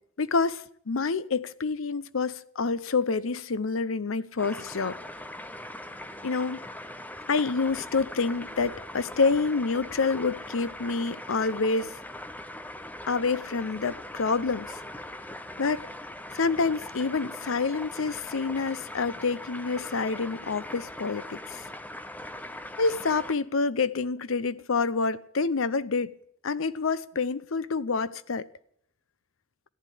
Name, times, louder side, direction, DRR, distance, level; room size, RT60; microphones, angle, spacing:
voice 1, 0.2-5.0 6.2-6.6 7.3-11.9 13.1-14.8 15.6-15.9 16.3-21.6 22.8-26.1 26.4-28.5, left 4 dB, 70° left, 0.7 m, -27 dB
sound 1, 4.4-23.3, left 1 dB, 10° left, 0.7 m, -41 dB
14.5 x 10.5 x 9.3 m
head